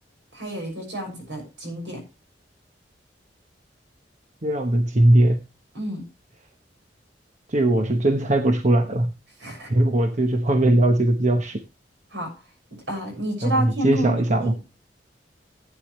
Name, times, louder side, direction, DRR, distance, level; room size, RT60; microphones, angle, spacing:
voice 1, 0.3-2.0 5.7-6.0 9.4-9.7 12.1-12.3 12.9-14.1 14.4-14.5, right 1 dB, 80° right, 6.4 m, -29 dB
voice 2, 4.4-5.4 7.5-9.1 9.7-11.6 13.4-14.5, right 1 dB, 45° right, 1.0 m, -20 dB
15.0 x 9.3 x 3.2 m
head